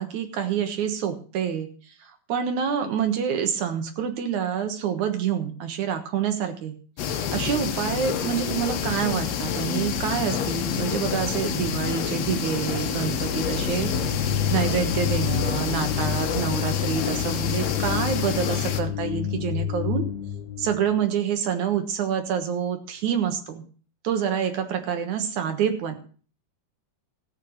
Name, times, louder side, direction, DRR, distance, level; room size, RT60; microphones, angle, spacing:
voice 1, 0.0-1.7 2.0-6.7 7.3-13.9 14.5-20.1 20.6-23.6 24.0-26.0, right 8 dB, 60° right, 6 dB, 2.3 m, -27 dB
sound 1, 7.0-18.8, left 8 dB, 80° left, 1.4 m, -28 dB
sound 2, 13.1-20.9, left 8 dB, 60° left, 4.2 m, -29 dB
15.5 x 6.9 x 6.4 m, 0.40 s
omnidirectional pair, 4.6 m